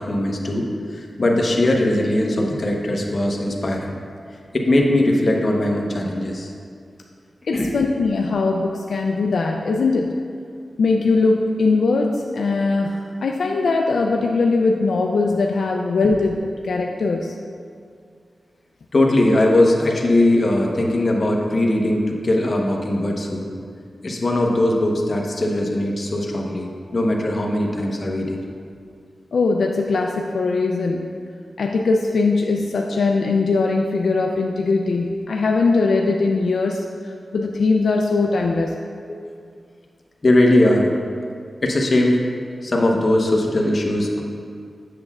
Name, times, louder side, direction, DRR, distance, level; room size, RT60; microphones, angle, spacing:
voice 1, 0.0-3.9 4.5-6.5 7.5-7.7 16.0-16.1 18.9-23.5 24.0-28.4 39.1-39.2 40.2-40.9 41.6-42.2 42.6-44.2, left 1 dB, 40° left, 0 dB, 0.8 m, -20 dB
voice 2, 7.5-10.1 10.8-16.4 16.6-17.3 29.3-31.1 31.6-36.8 37.3-38.8, left 3 dB, 80° left, 1 dB, 0.3 m, -20 dB
7.6 x 6.9 x 2.3 m, 2.2 s
wide cardioid pair, 100°, 0 cm